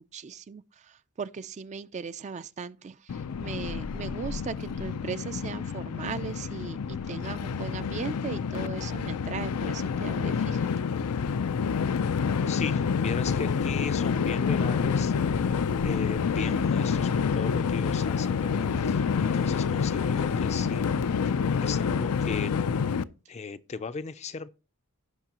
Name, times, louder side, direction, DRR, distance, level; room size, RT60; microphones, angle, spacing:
voice 1, 0.0-10.7, right 5 dB, 30° right, 0.3 m, -38 dB
Train, 3.1-23.0, left 6 dB, 90° left, 0.5 m, -28 dB
voice 2, 12.5-15.1 15.8-20.9 21.6-22.5 23.3-24.5, left 5 dB, 30° left, 0.4 m, -37 dB
16.5 x 5.5 x 2.9 m
head